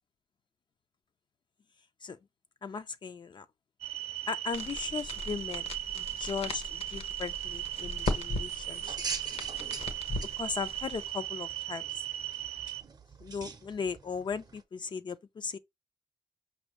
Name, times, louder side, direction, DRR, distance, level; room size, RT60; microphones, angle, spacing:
voice 1, 2.6-3.5 4.3-9.0 10.4-12.0 13.2-15.6, left 5 dB, 50° left, 0.3 m, -37 dB
sound 1, 3.8-12.8, right 13 dB, 85° right, 0.5 m, -38 dB
sound 2, 4.5-11.1, left 2 dB, 75° left, 0.9 m, -39 dB
sound 3, 7.2-14.6, right 4 dB, 40° right, 0.6 m, -44 dB
5.3 x 2.6 x 3.0 m
wide cardioid pair, 105°, 10 cm